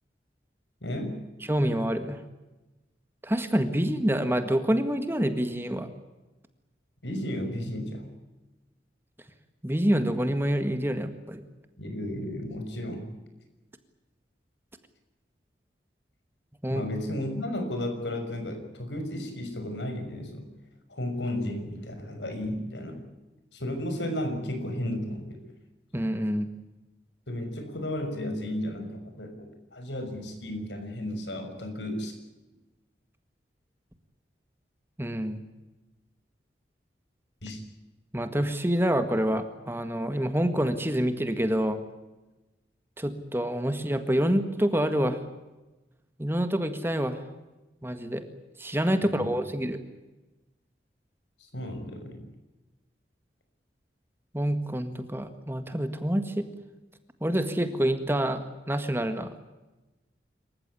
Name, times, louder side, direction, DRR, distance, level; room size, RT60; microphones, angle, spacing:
voice 1, 0.8-1.2 7.0-8.1 11.8-13.1 16.7-20.5 20.9-23.0 23.5-25.4 27.3-32.1 37.4-37.6 49.1-49.3 51.4-52.2, left 1 dB, 85° left, 6 dB, 6.2 m, -33 dB
voice 2, 1.5-2.2 3.2-5.9 9.6-11.4 16.6-16.8 25.9-26.5 35.0-35.4 38.1-41.8 43.0-45.2 46.2-47.2 47.8-48.3 48.6-49.8 54.3-56.5 57.2-59.3, equal, 15° right, 9 dB, 1.7 m, -27 dB
27.5 x 15.0 x 9.9 m, 1.1 s
head